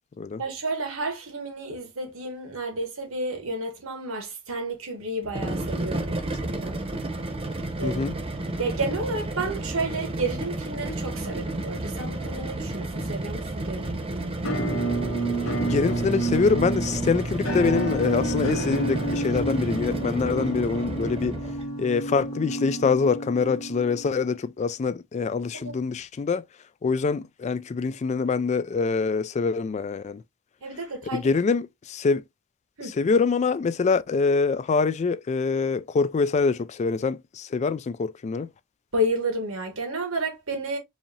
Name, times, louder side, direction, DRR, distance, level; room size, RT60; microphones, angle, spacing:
voice 1, 0.4-6.8 7.8-8.0 8.6-14.6 25.5-25.8 30.6-31.2 32.8-33.0 38.9-40.8, right 2 dB, 90° right, 1.5 m, -31 dB
sound 1, 5.2-21.7, right 2 dB, 30° right, 0.8 m, -32 dB
voice 2, 7.8-8.1 15.6-21.4 21.8-26.4 26.8-30.2 31.1-32.2 33.0-38.5, left 4 dB, 35° left, 0.3 m, -25 dB
Musical instrument, 14.4-24.2, right 1 dB, 85° left, 1.5 m, -29 dB
4.8 x 2.7 x 2.8 m
head